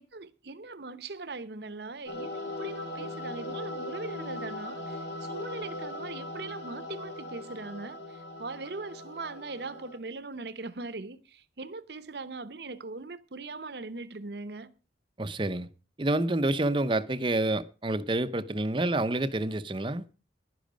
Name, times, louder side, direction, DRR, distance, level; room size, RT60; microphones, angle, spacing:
voice 1, 0.0-14.7, right 3 dB, 65° right, 0.9 m, -40 dB
sound 1, 2.1-10.0, left 2 dB, 75° left, 2.5 m, -39 dB
voice 2, 15.2-15.7 16.0-20.1, right 2 dB, 25° right, 0.6 m, -28 dB
11.5 x 10.5 x 5.1 m
head